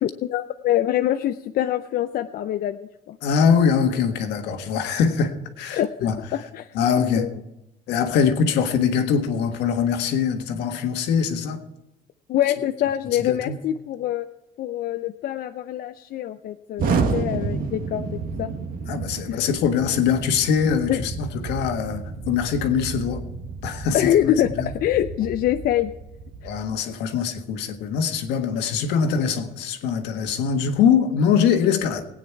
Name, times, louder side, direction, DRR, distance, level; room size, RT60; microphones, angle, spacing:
voice 1, 0.0-3.2 5.7-6.7 7.2-7.3 12.3-14.3 14.6-16.8 17.1-18.5 19.3-19.4 20.9-21.0 23.9-25.9 26.4-26.5, left 12 dB, 60° left, 8 dB, 0.5 m, -24 dB
voice 2, 3.2-6.2 6.7-7.3 7.9-11.6 13.1-13.6 17.1-17.2 18.9-23.2 23.6-24.7 26.4-32.0, left 7 dB, 85° left, 5 dB, 1.6 m, -23 dB
Explosion, 16.8-26.7, right 4 dB, 55° right, 1.5 m, -30 dB
18.5 x 9.1 x 4.6 m, 0.92 s
cardioid pair, 115°, 17 cm